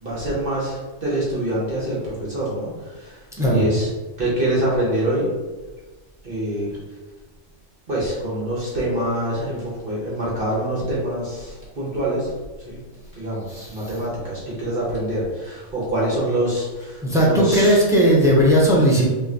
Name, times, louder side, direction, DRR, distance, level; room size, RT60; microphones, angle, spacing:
voice 1, 0.0-3.9 4.2-5.3 6.2-6.8 7.9-12.8 13.1-17.8, right 1 dB, 45° right, -6 dB, 1.1 m, -25 dB
voice 2, 17.0-19.1, equal, 5° right, -4 dB, 0.7 m, -16 dB
5.5 x 2.4 x 2.7 m, 1.2 s
omnidirectional pair, 1.3 m